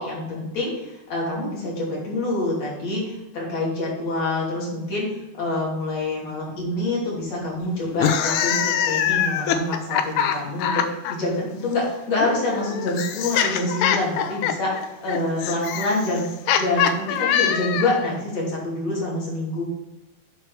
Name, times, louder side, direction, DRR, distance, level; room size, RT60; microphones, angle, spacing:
voice 1, 0.0-16.3 16.6-19.6, left 2 dB, 40° left, -4 dB, 3.9 m, -26 dB
sound 1, 7.9-11.1 12.2-18.1, left 9 dB, 80° left, 2.7 m, -24 dB
9.2 x 4.7 x 6.4 m, 0.96 s
omnidirectional pair, 4.8 m